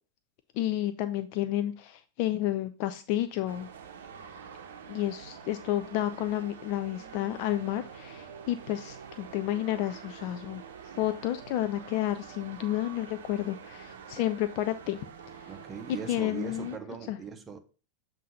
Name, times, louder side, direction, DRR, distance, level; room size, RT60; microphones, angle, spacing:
voice 1, 0.6-3.7 4.9-10.6 11.0-15.0 16.1-16.8 17.1-17.2, left 13 dB, 45° left, 0.3 m, -31 dB
sound 1, 3.5-16.8, right 7 dB, 60° right, 0.7 m, -46 dB
voice 2, 15.5-17.6, right 6 dB, 20° right, 0.8 m, -40 dB
7.3 x 2.7 x 5.6 m
figure-of-eight pair, 90°, 0 cm